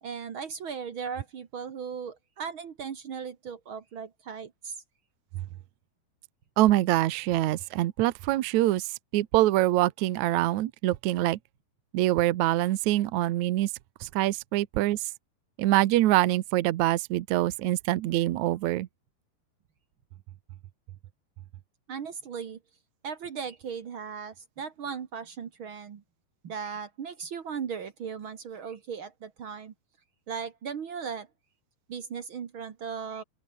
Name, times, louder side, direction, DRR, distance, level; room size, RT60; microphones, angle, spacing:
voice 1, 0.0-4.7 21.9-22.6 23.0-26.0 26.4-29.7 30.3-31.3 31.9-33.2, right 6 dB, 65° right, 1.2 m, -37 dB
voice 2, 6.6-8.9 9.1-11.4 11.9-13.7 14.0-15.0 15.6-18.9, right 15 dB, 85° right, 1.6 m, -24 dB
open air
omnidirectional pair, 4.7 m